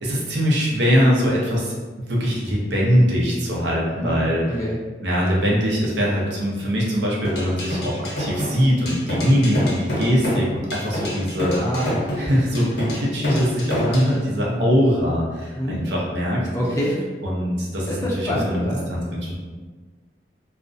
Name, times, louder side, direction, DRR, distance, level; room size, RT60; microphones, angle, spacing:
voice 1, 0.0-1.8 2.1-4.6 5.0-11.6 12.2-16.5 17.2-19.4, equal, 80° right, -4 dB, 0.6 m, -22 dB
voice 2, 4.0-4.8 11.6-12.1 13.7-13.9 14.5-14.7 15.6-15.8 16.5-17.0 17.9-18.9, equal, 15° left, -5 dB, 0.4 m, -26 dB
sound 1, 7.2-14.1, left 1 dB, 60° left, 0.6 m, -27 dB
2.4 x 2.1 x 2.5 m, 1.4 s
head